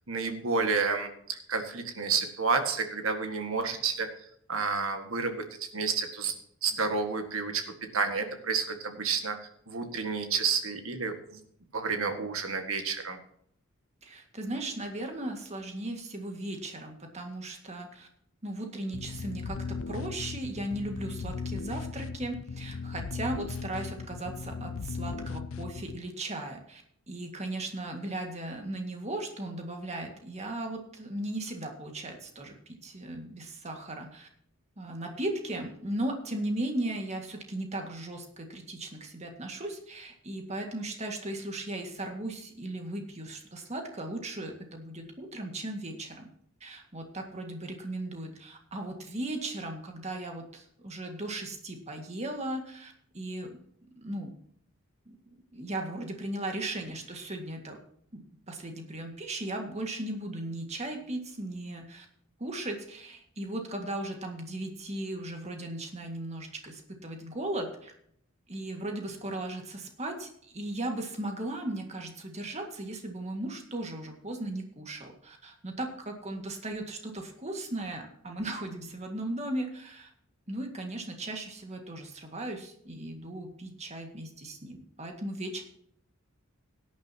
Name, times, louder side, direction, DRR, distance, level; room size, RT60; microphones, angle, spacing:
voice 1, 0.1-4.1 4.5-5.4 5.7-6.3 6.6-7.6 7.9-9.4 9.7-11.4 11.7-13.2, right 5 dB, 80° right, 6 dB, 1.8 m, -30 dB
voice 2, 14.0-18.1 18.4-34.3 34.8-46.3 46.6-53.6 54.0-54.3 55.1-57.8 58.1-62.1 62.4-67.9 68.5-80.1 80.5-85.6, right 1 dB, 30° right, 3 dB, 1.9 m, -37 dB
sound 1, 18.9-26.0, left 5 dB, 75° left, 0.5 m, -37 dB
17.5 x 10.5 x 2.9 m, 0.68 s
head